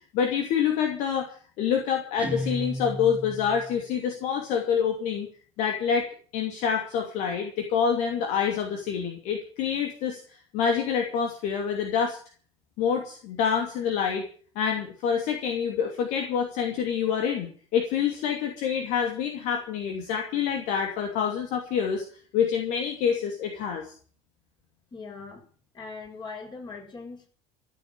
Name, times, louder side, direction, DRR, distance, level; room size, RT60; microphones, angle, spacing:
voice 1, 0.1-5.3 5.6-10.2 10.5-12.2 12.8-14.3 14.6-22.0 22.3-23.9, left 7 dB, 55° left, 3 dB, 2.6 m, -27 dB
Guitar, 2.2-3.9, equal, 10° right, 2.3 m, -34 dB
voice 2, 24.9-25.4 25.7-27.3, left 4 dB, 30° left, 2 dB, 7.1 m, -40 dB
14.5 x 8.3 x 9.9 m, 0.43 s
figure-of-eight pair, 60°, 15 cm